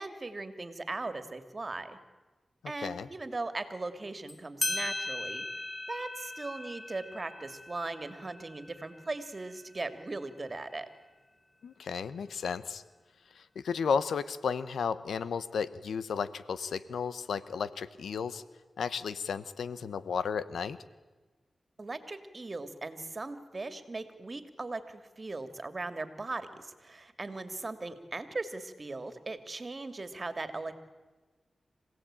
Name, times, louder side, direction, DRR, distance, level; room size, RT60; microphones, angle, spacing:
voice 1, 0.0-2.0 2.7-5.4 5.9-10.9 21.8-30.8, right 3 dB, 45° right, 10 dB, 2.4 m, -39 dB
voice 2, 2.8-3.1 11.6-12.8 13.4-18.4 18.8-20.8, left 6 dB, 90° left, 15 dB, 0.9 m, -33 dB
sound 1, 4.3-4.4 4.6-9.7, left 2 dB, 40° left, 1.6 m, -38 dB
26.5 x 17.0 x 8.9 m, 1.2 s
cardioid pair, 50°, 0 cm